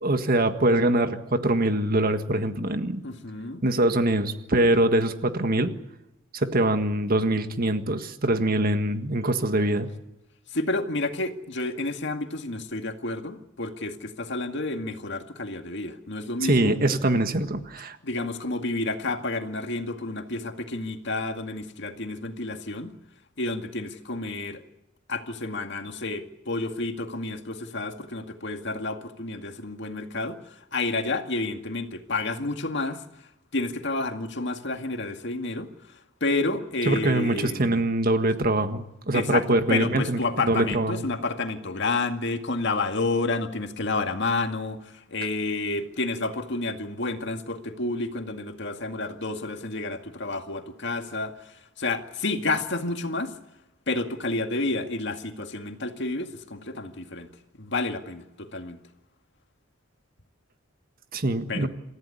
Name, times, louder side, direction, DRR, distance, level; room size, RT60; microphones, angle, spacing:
voice 1, 0.0-3.0 3.6-5.7 6.3-9.9 16.4-18.0 36.9-41.1 61.1-61.7, right 1 dB, 50° right, 8 dB, 1.6 m, -23 dB
voice 2, 3.0-3.6 10.5-16.8 18.0-22.9 23.4-24.6 25.1-37.9 39.1-53.4 53.9-57.3 57.6-58.8 61.5-61.7, left 2 dB, 65° left, 6 dB, 2.1 m, -30 dB
28.0 x 14.5 x 9.9 m, 0.89 s
head